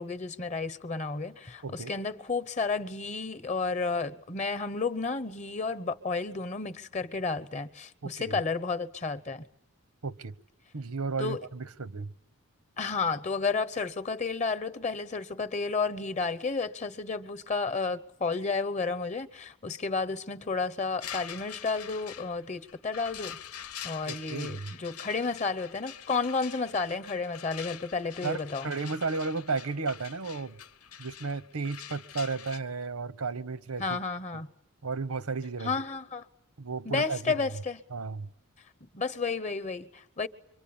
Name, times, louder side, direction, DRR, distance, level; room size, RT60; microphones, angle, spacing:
voice 1, 0.0-9.4 11.2-11.5 12.8-23.4 23.8-28.7 33.8-34.5 35.6-36.3 36.8-37.8 38.9-40.3, left 4 dB, 30° left, 1.0 m, -32 dB
voice 2, 8.0-8.4 10.0-10.3 10.7-12.1 24.1-24.7 28.2-30.6 31.0-34.0 34.8-35.7 36.6-37.5 37.9-38.3, right 4 dB, 85° right, 1.0 m, -34 dB
sound 1, 21.0-32.6, left 9 dB, 90° left, 1.0 m, -45 dB
26.5 x 24.0 x 8.9 m
head